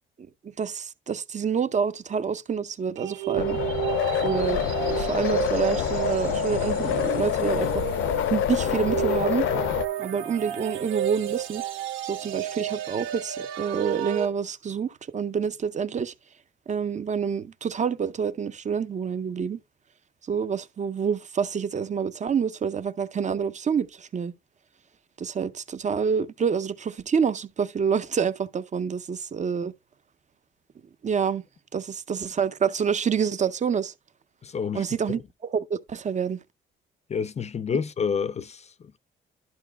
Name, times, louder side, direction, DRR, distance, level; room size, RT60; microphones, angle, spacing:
voice 1, 0.6-3.6 4.2-7.9 8.3-9.5 10.0-11.6 12.0-16.1 16.7-19.6 20.3-24.3 25.2-29.7 31.0-31.4 31.7-33.9 34.7-36.4, right 6 dB, 35° right, 0.6 m, -27 dB
sound 1, 3.0-14.3, right 12 dB, 90° right, 0.9 m, -32 dB
sound 2, 3.3-9.8, left 11 dB, 85° left, 0.6 m, -26 dB
voice 2, 34.4-34.9 37.1-39.0, left 6 dB, 35° left, 0.4 m, -29 dB
11.5 x 6.0 x 2.2 m
cardioid pair, 90°, 20 cm